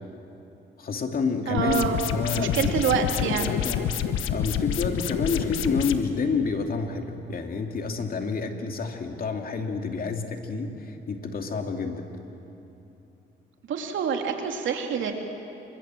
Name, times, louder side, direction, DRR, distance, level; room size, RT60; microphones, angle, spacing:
voice 1, 0.8-2.8 3.3-3.8 4.3-12.1, left 4 dB, 45° left, 4 dB, 2.6 m, -29 dB
voice 2, 1.5-2.0 2.4-3.5 13.7-15.1, right 7 dB, 75° right, 3 dB, 3.0 m, -26 dB
sound 1, 1.6-6.0, left 9 dB, 85° left, 1.3 m, -28 dB
27.5 x 24.5 x 7.7 m, 2.9 s
cardioid pair, 90°, 20 cm